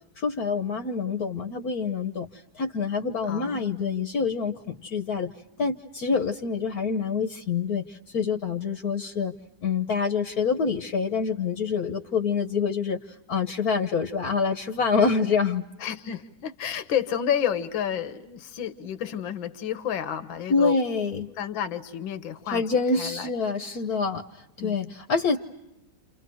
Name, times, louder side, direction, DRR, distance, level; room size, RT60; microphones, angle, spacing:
voice 1, 0.1-5.3 5.6-9.3 9.6-15.7 20.5-21.3 22.5-25.4, left 5 dB, 55° left, 6 dB, 1.5 m, -26 dB
voice 2, 3.3-4.1 15.8-20.8 21.4-23.3 24.6-24.8, left 9 dB, 80° left, 11 dB, 1.9 m, -31 dB
29.5 x 29.0 x 6.3 m, 0.93 s
omnidirectional pair, 2.1 m